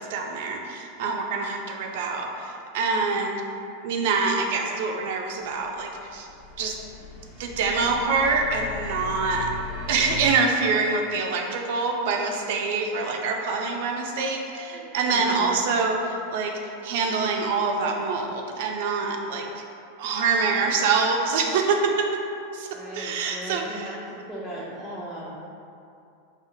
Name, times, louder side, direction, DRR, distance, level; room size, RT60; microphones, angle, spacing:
voice 1, 0.0-3.4 3.8-6.3 6.6-6.7 7.4-9.5 9.9-16.5 16.8-19.6 20.0-22.7 22.9-23.8, right 4 dB, 65° right, 2 dB, 0.4 m, -25 dB
sound 1, 5.6-10.3, left 5 dB, 30° left, 0.9 m, -38 dB
voice 2, 14.5-15.6 22.7-25.4, equal, ahead, -9 dB, 0.5 m, -38 dB
5.0 x 2.3 x 2.7 m, 2.5 s
supercardioid pair, 135°, 0 cm